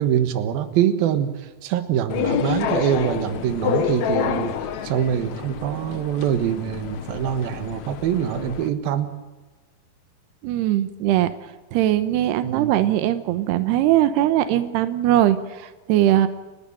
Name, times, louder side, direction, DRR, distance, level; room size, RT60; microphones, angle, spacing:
voice 1, 0.0-4.5 4.8-9.1 12.4-12.8, right 10 dB, 70° right, 9 dB, 3.1 m, -24 dB
sound 1, 2.1-8.7, left 8 dB, 65° left, 1.9 m, -28 dB
voice 2, 10.4-11.3 11.7-16.3, right 13 dB, 90° right, 11 dB, 3.0 m, -20 dB
30.0 x 12.5 x 9.1 m, 1.2 s
omnidirectional pair, 4.7 m